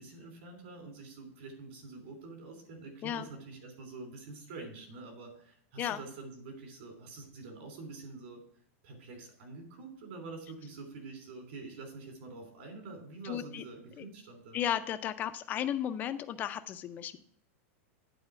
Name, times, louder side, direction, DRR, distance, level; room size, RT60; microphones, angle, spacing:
voice 1, 0.0-8.4 8.8-14.6, right 3 dB, 55° right, 3 dB, 3.3 m, -46 dB
voice 2, 13.2-13.6 14.0-14.1 14.5-17.2, left 10 dB, 20° left, 10 dB, 0.5 m, -34 dB
8.9 x 4.2 x 6.9 m, 0.65 s
supercardioid pair, 160°, 8 cm